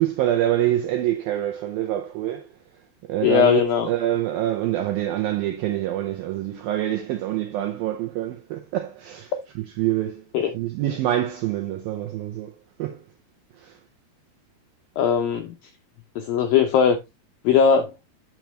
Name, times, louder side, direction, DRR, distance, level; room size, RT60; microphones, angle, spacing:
voice 1, 0.0-2.5 3.0-9.3 9.8-10.3 10.5-12.5 12.8-13.0 13.6-13.7, right 13 dB, 90° right, 2.1 m, -25 dB
voice 2, 3.2-3.9 10.3-10.5 15.0-15.5 16.2-17.0 17.4-17.9, left 7 dB, 85° left, 2.0 m, -19 dB
9.1 x 6.0 x 3.1 m
omnidirectional pair, 5.1 m